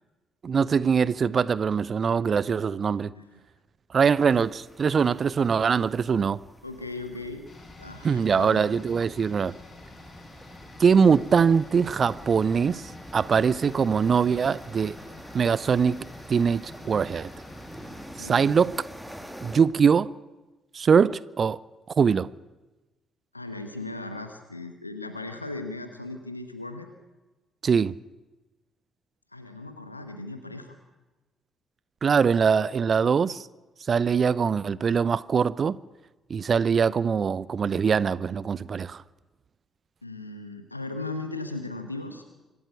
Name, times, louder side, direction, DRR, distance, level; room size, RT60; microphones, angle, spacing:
voice 1, 0.4-3.1 3.9-6.4 8.0-9.6 10.8-15.0 15.3-17.3 18.2-18.8 19.4-20.1 20.7-21.6 22.0-22.3 27.6-28.0 32.0-33.5 33.9-35.8 36.3-39.0, right 6 dB, 40° right, 0.6 m, -22 dB
sound 1, 4.3-19.6, equal, 5° right, 2.3 m, -46 dB
voice 2, 6.6-7.4 7.8-8.7 18.2-18.5 23.3-26.9 29.3-30.8 40.0-42.2, left 2 dB, 85° left, 1.1 m, -37 dB
sound 2, 7.4-19.2 19.5-19.6, left 2 dB, 30° left, 7.2 m, -48 dB
25.5 x 12.0 x 8.5 m
figure-of-eight pair, 45°, 0 cm